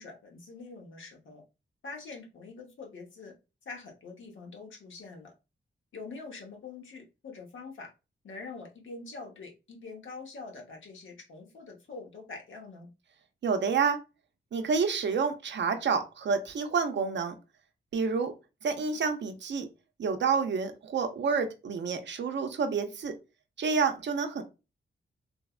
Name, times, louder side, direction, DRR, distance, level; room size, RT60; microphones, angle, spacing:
voice 1, 0.0-1.4 1.8-3.3 3.6-5.3 5.9-7.9 8.2-12.9, left 4 dB, 75° left, 1 dB, 0.9 m, -44 dB
voice 2, 13.4-14.0 14.5-17.3 17.9-18.3 18.6-19.7 20.0-23.1 23.6-24.4, right 5 dB, 60° right, 7 dB, 0.5 m, -28 dB
3.3 x 2.1 x 2.3 m, 0.28 s
wide cardioid pair, 110°, 20 cm